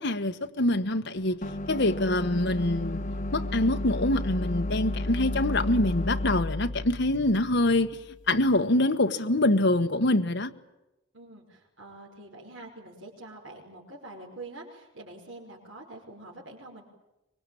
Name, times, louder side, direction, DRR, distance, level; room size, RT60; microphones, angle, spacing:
voice 1, 0.0-1.4 1.7-3.0 3.3-8.0 8.3-10.5, left 1 dB, 60° left, 1.4 m, -25 dB
sound 1, 1.4-8.5, left 1 dB, 40° left, 1.9 m, -33 dB
voice 2, 11.1-16.8, right 2 dB, 65° right, 5.7 m, -45 dB
25.0 x 23.5 x 8.7 m
head